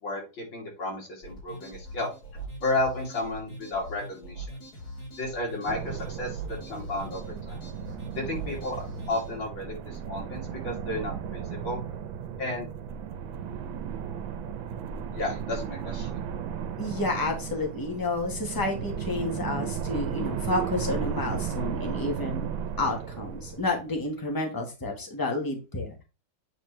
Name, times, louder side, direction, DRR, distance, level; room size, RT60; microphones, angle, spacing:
voice 1, 0.0-2.1 2.6-4.5 5.2-7.6 8.1-11.8 12.4-12.7 15.1-16.2, left 2 dB, 75° left, -2 dB, 3.6 m, -33 dB
sound 1, 1.2-9.4, right 1 dB, 50° left, 3.9 m, -42 dB
sound 2, 5.7-24.1, right 8 dB, 80° right, 1.6 m, -35 dB
voice 2, 16.8-22.5 22.8-26.0, left 2 dB, 10° left, 2 dB, 1.3 m, -30 dB
8.6 x 4.3 x 3.2 m, 0.30 s
omnidirectional pair, 2.1 m